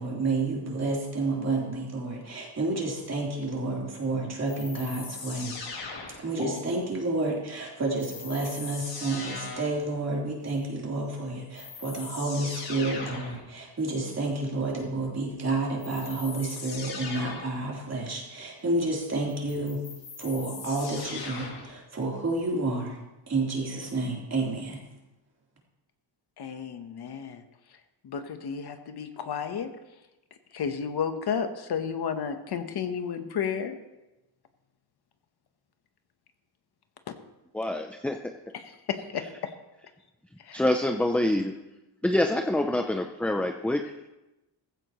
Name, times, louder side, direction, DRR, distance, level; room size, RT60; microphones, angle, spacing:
voice 1, 0.0-5.5 6.2-19.8 20.2-23.0 23.3-24.8, right 2 dB, 35° right, -3 dB, 3.6 m, -30 dB
sound 1, 4.5-6.5 8.0-9.8 11.1-11.2 11.5-13.4 15.8-17.6 19.3-21.7, left 4 dB, 80° left, 4.9 m, -40 dB
voice 2, 26.4-27.4 28.0-29.7 30.5-33.8 38.5-39.5 40.4-40.6, left 7 dB, 60° left, 7 dB, 1.2 m, -32 dB
voice 3, 37.5-38.2 40.5-41.5 42.0-44.1, left 1 dB, 5° left, 5 dB, 0.5 m, -26 dB
15.5 x 15.0 x 3.1 m, 0.99 s
wide cardioid pair, 145°, 43 cm